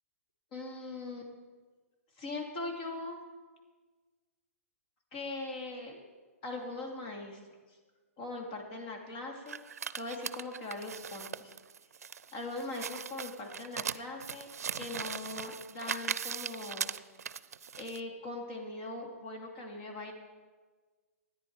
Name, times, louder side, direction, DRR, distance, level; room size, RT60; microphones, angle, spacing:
voice 1, 0.5-1.3 2.2-3.2 5.1-6.0 6.4-7.4 8.2-9.6 10.0-11.5 12.3-14.5 14.7-16.9 17.8-20.1, left 2 dB, 40° left, 1 dB, 2.5 m, -40 dB
sound 1, 9.5-18.0, right 7 dB, 85° right, 0.5 m, -39 dB
13.5 x 9.9 x 4.7 m, 1.4 s
hypercardioid pair, 140°, 8 cm